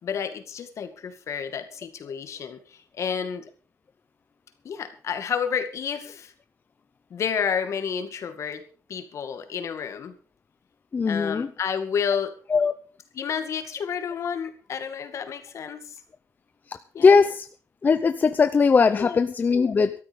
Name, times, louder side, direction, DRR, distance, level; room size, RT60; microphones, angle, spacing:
voice 1, 0.0-3.5 4.6-6.3 7.1-10.2 11.1-12.3 13.2-16.0 16.9-17.1 19.0-19.2, left 7 dB, 60° left, 9 dB, 2.2 m, -30 dB
voice 2, 10.9-11.5 12.5-12.7 16.7-17.5 17.8-19.9, left 5 dB, 35° left, 10 dB, 0.7 m, -20 dB
13.5 x 13.0 x 5.4 m, 0.39 s
wide cardioid pair, 165°, 6 cm